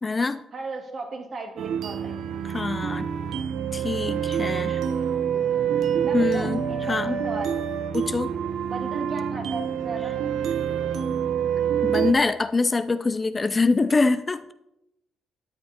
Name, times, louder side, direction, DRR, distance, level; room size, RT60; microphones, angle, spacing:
voice 1, 0.0-0.4 2.4-3.1 3.7-4.8 6.1-6.6 6.9-7.2 7.9-8.3 11.8-14.4, left 3 dB, 25° left, 12 dB, 0.4 m, -24 dB
voice 2, 0.5-2.3 5.5-5.6 6.0-7.6 8.6-10.2, right 3 dB, 50° right, 2 dB, 2.0 m, -36 dB
sound 1, 1.6-12.1, right 8 dB, 75° right, 0.7 m, -27 dB
13.0 x 9.3 x 2.9 m, 0.86 s
cardioid pair, 90°, 0 cm